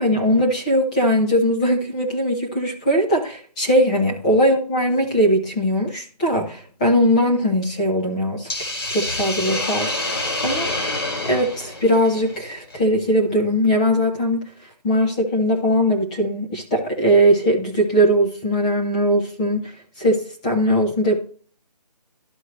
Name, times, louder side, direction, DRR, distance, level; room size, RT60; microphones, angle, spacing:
voice 1, 0.0-8.5 8.9-10.7 11.2-14.4 14.8-21.2, equal, 10° left, -1 dB, 0.9 m, -20 dB
Hiss, 8.5-12.8, left 2 dB, 35° left, 2.5 m, -27 dB
12.5 x 4.6 x 3.1 m, 0.42 s
figure-of-eight pair, 170°, 21 cm